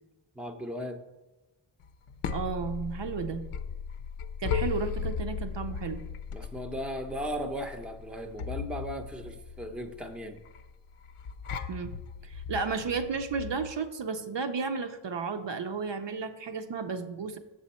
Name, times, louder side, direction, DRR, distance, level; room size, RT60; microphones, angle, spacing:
voice 1, 0.3-1.0 6.3-10.4, equal, ahead, 5 dB, 0.6 m, -37 dB
sound 1, 1.8-13.7, left 6 dB, 85° left, 0.6 m, -37 dB
voice 2, 2.3-3.4 4.4-6.0 11.7-11.9 12.2-17.4, right 5 dB, 60° right, 7 dB, 0.7 m, -33 dB
7.3 x 6.2 x 4.2 m, 1.1 s
wide cardioid pair, 70°, 49 cm